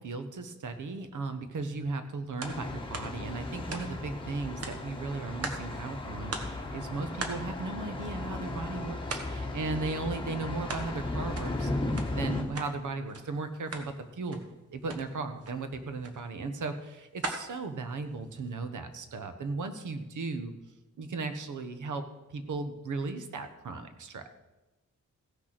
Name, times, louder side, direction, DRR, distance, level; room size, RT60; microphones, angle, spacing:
voice 1, 0.0-11.7 12.1-14.4 14.7-20.5 21.0-22.0 22.3-24.3, right 3 dB, 85° right, 8 dB, 1.1 m, -36 dB
Thunder, 2.4-12.4, left 2 dB, 15° left, 1.4 m, -36 dB
sound 1, 2.4-2.6 2.9-4.2 4.6-5.8 6.0-6.1 6.3-6.7 7.2-8.6 9.1-9.4 9.8-10.9 11.2-12.7 13.1-13.3 13.6-13.9 14.3-14.5 14.8-15.0 15.4-15.6 16.0-16.2 16.6-18.5, right 3 dB, 55° right, 1.4 m, -40 dB
15.5 x 6.4 x 6.0 m, 1.1 s
wide cardioid pair, 160°, 30 cm